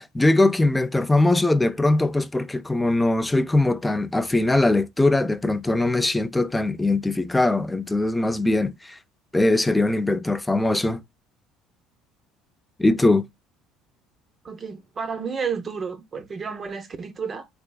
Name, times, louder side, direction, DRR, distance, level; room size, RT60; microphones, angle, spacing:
voice 1, 0.0-9.0 9.3-11.0 12.8-13.3, left 2 dB, 10° left, 0.4 m, -21 dB
voice 2, 14.4-17.5, right 6 dB, 35° right, 0.6 m, -31 dB
3.9 x 3.3 x 2.2 m
supercardioid pair, 105°, 0 cm